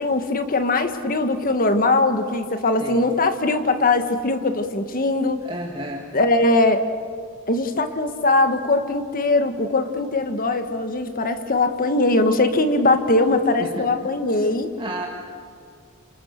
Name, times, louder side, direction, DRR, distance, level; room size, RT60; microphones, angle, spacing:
voice 1, 0.0-5.4 6.1-6.8 7.5-14.7, left 2 dB, 45° left, 8 dB, 1.7 m, -21 dB
voice 2, 5.4-6.0 13.6-13.9 14.8-15.1, right 1 dB, 25° right, 0 dB, 1.9 m, -31 dB
28.0 x 27.5 x 6.7 m, 2.2 s
head